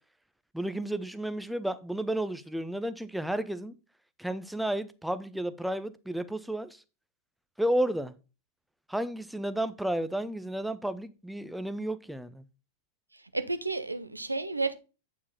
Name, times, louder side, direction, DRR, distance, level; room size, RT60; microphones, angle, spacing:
voice 1, 0.5-3.7 4.2-6.8 7.6-8.1 8.9-12.4, right 1 dB, ahead, 0.6 m, -32 dB
voice 2, 13.1-14.7, right 3 dB, 85° right, 0.6 m, -32 dB
8.6 x 4.7 x 4.0 m
figure-of-eight pair, 90°, 0 cm